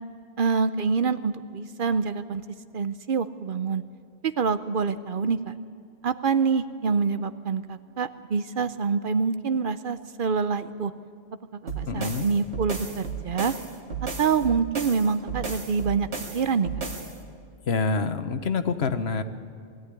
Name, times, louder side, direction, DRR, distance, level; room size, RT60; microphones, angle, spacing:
voice 1, 0.4-2.4 2.7-3.8 4.2-5.5 6.0-10.9 11.8-13.5 14.2-16.1 16.3-16.7, right 5 dB, 55° right, 12 dB, 0.8 m, -26 dB
sound 1, 11.7-17.2, right 5 dB, 75° right, 2.3 m, -34 dB
voice 2, 11.9-12.3 17.6-19.2, left 4 dB, 70° left, 10 dB, 1.3 m, -26 dB
21.0 x 14.0 x 9.9 m, 2.3 s
omnidirectional pair, 1.1 m